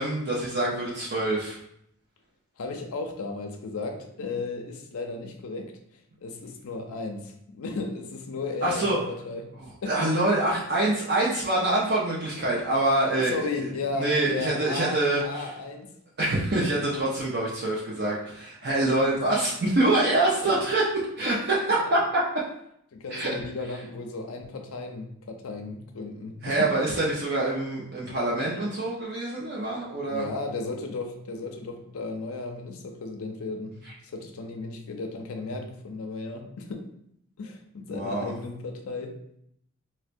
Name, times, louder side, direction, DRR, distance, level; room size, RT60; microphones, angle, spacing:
voice 1, 0.0-1.6 8.6-9.0 9.8-15.5 16.2-20.8 21.2-22.0 23.1-23.3 26.4-30.3 37.9-38.3, right 2 dB, 50° right, -6 dB, 0.6 m, -25 dB
voice 2, 2.6-5.7 6.2-9.5 9.8-10.1 13.2-16.0 18.7-19.0 20.4-20.6 22.9-26.7 30.1-36.9 37.4-39.2, left 3 dB, 80° left, 3 dB, 0.5 m, -35 dB
4.3 x 2.1 x 2.5 m, 0.73 s
head